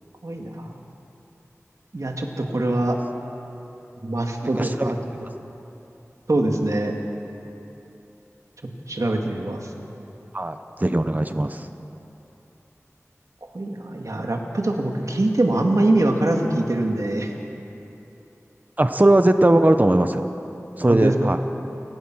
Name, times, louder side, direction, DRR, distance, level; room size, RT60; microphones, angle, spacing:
voice 1, 0.2-0.7 1.9-3.0 4.0-5.0 6.3-6.9 8.9-9.7 13.5-17.3 20.9-21.3, right 1 dB, 80° right, 2 dB, 2.3 m, -23 dB
voice 2, 4.6-4.9 10.3-11.7 18.8-20.3 20.8-21.4, right 1 dB, 30° right, 8 dB, 0.9 m, -19 dB
30.0 x 16.0 x 6.2 m, 3.0 s
wide cardioid pair, 45°, 5 cm